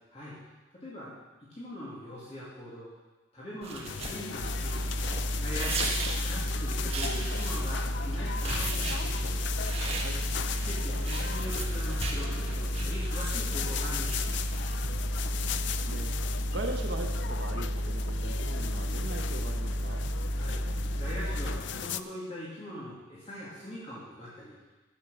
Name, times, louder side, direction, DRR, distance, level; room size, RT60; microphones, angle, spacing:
voice 1, 0.7-1.1 1.5-2.9 3.3-4.9 5.4-9.4 10.6-14.4 20.3-20.6 20.9-24.5, equal, 30° left, -8 dB, 2.4 m, -41 dB
sound 1, 3.6-14.9, right 3 dB, 30° right, 1.4 m, -39 dB
sound 2, 3.9-22.0, left 7 dB, 55° left, 0.4 m, -37 dB
sound 3, 4.4-21.6, equal, 90° right, 2.7 m, -32 dB
voice 2, 15.2-20.0, right 2 dB, 55° right, 3 dB, 1.0 m, -40 dB
11.0 x 8.0 x 6.2 m, 1.2 s
head